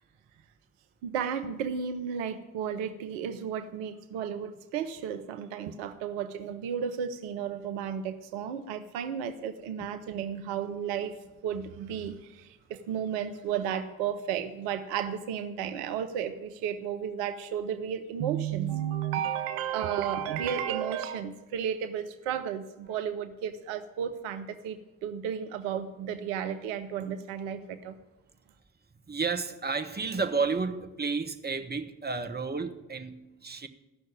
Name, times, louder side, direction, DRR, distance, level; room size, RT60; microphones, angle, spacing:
voice 1, 1.0-11.2 11.4-27.9, right 8 dB, 80° right, 0.7 m, -33 dB
voice 2, 29.1-33.7, right 4 dB, 25° right, 1.3 m, -31 dB
14.5 x 6.4 x 8.6 m
hypercardioid pair, 40°, 41 cm